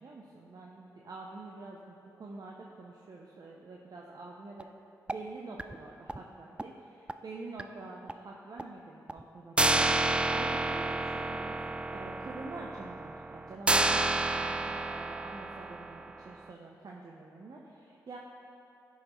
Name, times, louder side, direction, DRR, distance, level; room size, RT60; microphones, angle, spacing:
voice 1, 0.0-4.7 5.1-18.2, right 3 dB, 55° right, -2 dB, 0.6 m, -46 dB
sound 1, 4.6-4.7 5.1-5.2 5.6-5.8 6.1-6.2 6.6-6.7 7.1-7.2 7.6-7.7 8.1-8.2 8.6-8.7 9.1-9.2 9.6-16.3, right 2 dB, 15° right, 0.3 m, -30 dB
9.8 x 5.6 x 3.0 m, 2.7 s
supercardioid pair, 40°, 8 cm